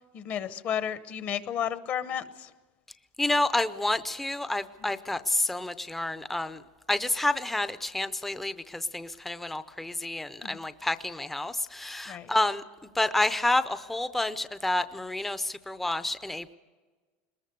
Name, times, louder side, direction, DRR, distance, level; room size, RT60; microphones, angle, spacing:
voice 1, 0.1-2.5 10.4-10.6 12.1-12.3, left 9 dB, 40° left, 13 dB, 1.0 m, -32 dB
voice 2, 3.2-6.6 6.9-12.6 13.0-16.5, left 2 dB, 5° left, 12 dB, 0.6 m, -29 dB
22.0 x 20.0 x 6.8 m, 1.4 s
supercardioid pair, 150°, 5 cm